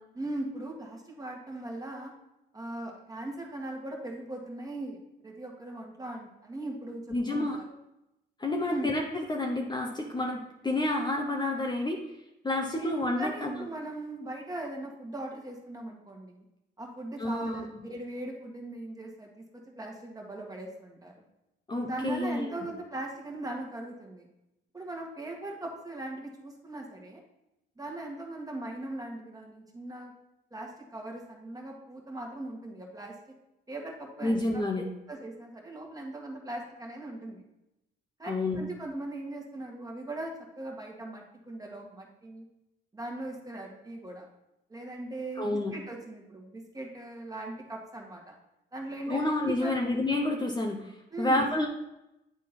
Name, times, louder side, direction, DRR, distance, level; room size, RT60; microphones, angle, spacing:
voice 1, 0.1-2.1 2.5-5.0 5.2-7.7 8.7-8.9 12.7-16.4 16.8-19.4 19.8-21.1 21.8-24.3 24.7-27.2 27.8-30.1 30.5-33.1 33.7-37.4 38.2-40.3 40.6-42.4 42.9-44.3 44.7-48.3 48.7-49.8 51.1-51.5, right 1 dB, 20° right, 0 dB, 1.6 m, -39 dB
voice 2, 7.1-7.6 8.4-12.0 12.4-13.7 17.2-17.8 21.7-22.5 34.2-34.8 38.3-38.6 45.4-45.7 49.1-51.7, left 2 dB, 20° left, 1 dB, 0.8 m, -29 dB
9.4 x 3.7 x 4.2 m, 0.91 s
cardioid pair, 90°, 20 cm